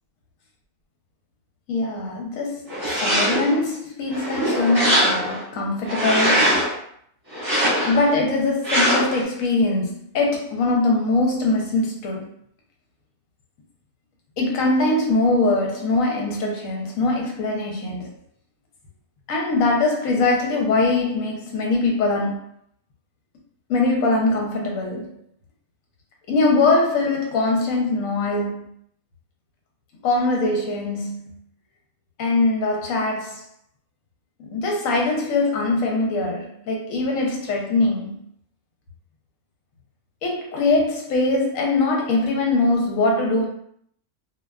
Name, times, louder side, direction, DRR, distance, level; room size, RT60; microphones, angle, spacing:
voice 1, 1.7-6.6 7.6-12.3 14.4-18.1 19.3-22.4 23.7-25.2 26.3-28.7 30.0-31.3 32.2-33.4 34.4-38.2 40.2-43.5, left 2 dB, 75° left, 1.0 m, -22 dB
sound 1, 2.7-3.6 4.1-5.4 5.8-6.7 7.3-8.1 8.6-9.2, equal, 30° right, 1.2 m, -21 dB
2.4 x 2.2 x 2.2 m
omnidirectional pair, 1.5 m